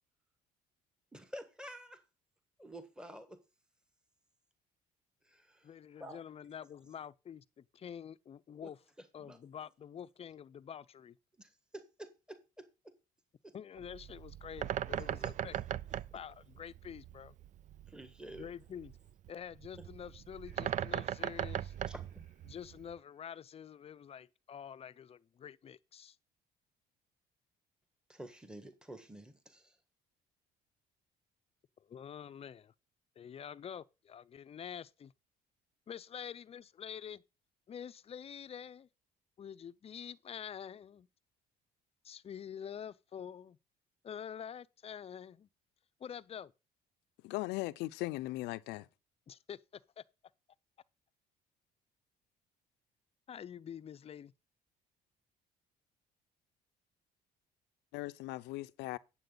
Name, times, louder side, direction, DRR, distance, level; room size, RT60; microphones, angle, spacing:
voice 1, 1.1-2.0 2.6-3.4 5.2-5.7 6.0-6.2 8.6-8.7 9.2-9.4 11.4-12.9 13.4-13.5 14.9-15.3 16.1-16.2 17.9-18.5 19.8-19.9 21.9-22.3 28.1-29.8, right 1 dB, 5° right, 1.5 m, -50 dB
voice 2, 5.6-8.8 9.1-11.2 13.5-15.8 16.1-17.4 18.4-19.0 19.3-21.7 22.5-26.2 31.8-32.7 33.2-35.1 35.9-37.2 37.7-38.9 39.4-41.1 42.0-43.6 44.0-45.5 46.0-46.5 49.3-50.0 53.3-54.3, left 8 dB, 35° left, 0.6 m, -47 dB
Bird, 13.8-22.9, right 11 dB, 45° right, 0.4 m, -39 dB
Laughter, 20.3-23.5, right 3 dB, 65° right, 3.4 m, -70 dB
voice 3, 47.2-48.9 57.9-59.0, left 19 dB, 90° left, 0.6 m, -38 dB
9.3 x 7.6 x 3.9 m
cardioid pair, 110°, 17 cm